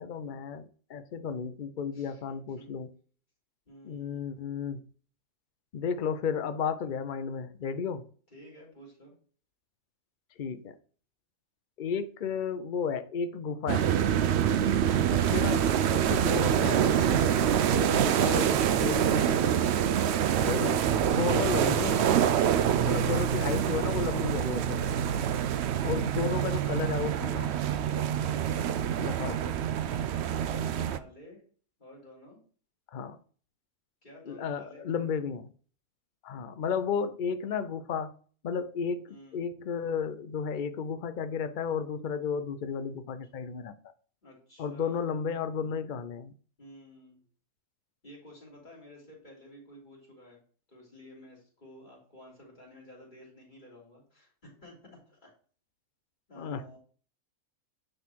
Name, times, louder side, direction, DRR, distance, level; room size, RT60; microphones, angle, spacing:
voice 1, 0.0-2.9 3.8-4.8 5.7-8.1 10.4-10.8 11.8-13.9 15.1-19.4 20.4-22.1 22.8-24.9 25.8-27.6 29.0-29.6 32.9-33.2 34.3-35.5 36.2-38.1 38.4-39.0 39.3-43.7 44.6-46.3 56.4-56.8, left 6 dB, 90° left, 0.4 m, -33 dB
voice 2, 1.9-2.7 3.7-4.2 8.3-9.1 14.4-14.8 17.0-17.3 19.8-20.3 22.5-22.8 24.9-25.4 28.0-28.7 29.9-31.4 31.8-32.4 34.0-35.0 39.1-39.4 44.2-45.0 46.6-47.2 48.0-50.4 50.7-55.3 56.3-56.8, equal, 30° left, 3.3 m, -52 dB
sound 1, 13.7-31.0, right 9 dB, 90° right, 0.5 m, -26 dB
9.6 x 4.0 x 4.5 m
omnidirectional pair, 1.7 m